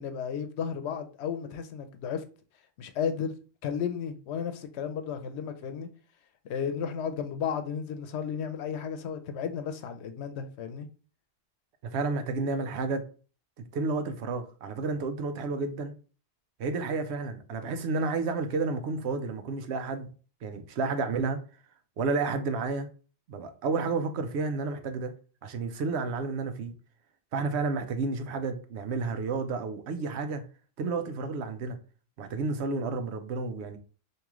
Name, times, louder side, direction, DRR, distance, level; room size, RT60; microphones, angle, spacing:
voice 1, 0.0-2.2 2.8-3.4 3.6-5.9 6.5-10.9, left 7 dB, 85° left, 0.9 m, -33 dB
voice 2, 11.9-13.1 13.7-16.0 16.6-20.1 20.4-21.4 22.0-22.9 23.3-25.1 25.4-26.7 27.3-30.4 30.8-31.8 32.2-33.8, right 4 dB, 85° right, 0.9 m, -31 dB
3.0 x 2.8 x 3.5 m
omnidirectional pair, 1.1 m